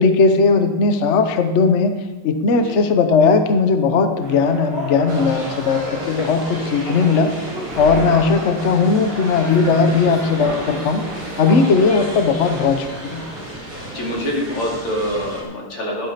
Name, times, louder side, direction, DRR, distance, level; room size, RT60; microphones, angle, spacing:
voice 1, 0.0-2.0 2.2-7.3 7.8-11.0 11.4-13.2, left 4 dB, 55° left, 8 dB, 0.7 m, -17 dB
sound 1, 4.2-14.3, right 1 dB, 30° left, 5.2 m, -32 dB
sound 2, 5.1-15.4, right 1 dB, 5° right, 3.8 m, -35 dB
voice 2, 13.9-16.1, equal, 80° left, -3 dB, 3.4 m, -25 dB
11.5 x 8.1 x 5.8 m, 1.2 s
omnidirectional pair, 2.4 m